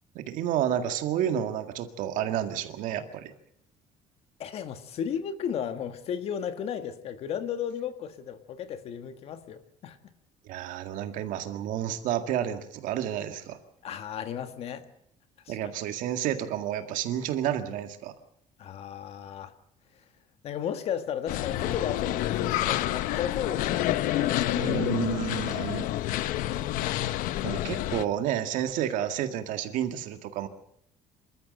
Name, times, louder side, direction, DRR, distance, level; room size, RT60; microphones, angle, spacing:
voice 1, 0.2-3.3 10.5-13.6 15.5-18.1 24.5-25.9 27.4-30.5, right 10 dB, 70° right, 8 dB, 1.9 m, -30 dB
voice 2, 4.4-10.1 13.8-14.9 15.4-15.6 18.6-19.5 20.4-26.0, left 8 dB, 45° left, 10 dB, 1.5 m, -35 dB
sound 1, 21.3-28.1, left 14 dB, 85° left, 0.9 m, -28 dB
26.5 x 13.5 x 7.7 m, 0.70 s
cardioid pair, 180°, 14 cm